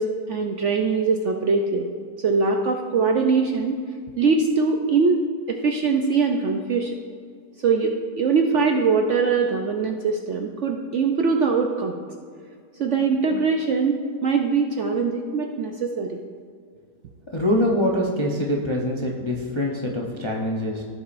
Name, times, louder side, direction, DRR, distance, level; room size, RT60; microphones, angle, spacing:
voice 1, 0.0-1.9 2.2-3.8 4.2-6.9 7.6-12.0 12.8-16.2, right 4 dB, 65° right, 3 dB, 0.8 m, -22 dB
voice 2, 17.3-20.8, left 1 dB, 30° left, -2 dB, 0.5 m, -24 dB
15.5 x 7.0 x 2.5 m, 2.1 s
omnidirectional pair, 1.8 m